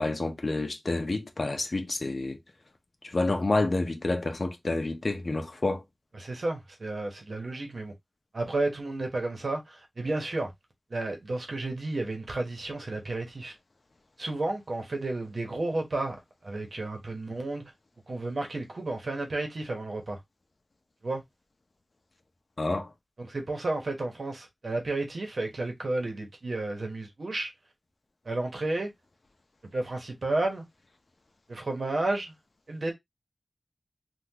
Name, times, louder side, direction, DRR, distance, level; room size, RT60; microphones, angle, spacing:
voice 1, 0.0-2.4 3.0-5.8 22.6-22.9, left 2 dB, 60° left, 0.7 m, -28 dB
voice 2, 6.1-7.9 8.3-10.5 10.9-13.5 14.2-16.2 16.4-17.7 18.1-20.2 21.0-21.2 23.2-27.5 28.2-28.9 29.7-30.6 31.5-32.3 32.7-32.9, right 2 dB, 75° right, 1.1 m, -32 dB
3.7 x 2.4 x 2.8 m
wide cardioid pair, 75°, 0 cm